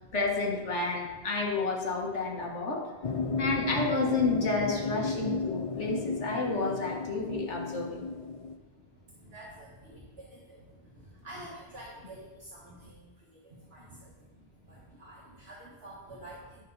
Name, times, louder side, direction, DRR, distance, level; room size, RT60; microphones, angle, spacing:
voice 1, 0.1-2.9 3.4-8.1, left 3 dB, 85° left, 0 dB, 1.8 m, -30 dB
sound 1, 3.0-8.6, left 4 dB, 45° left, 0.5 m, -33 dB
voice 2, 3.2-3.6 8.3-8.4 9.2-14.2 14.6-16.6, right 1 dB, 60° right, -6 dB, 1.8 m, -48 dB
9.6 x 7.2 x 4.0 m, 1.2 s
omnidirectional pair, 1.2 m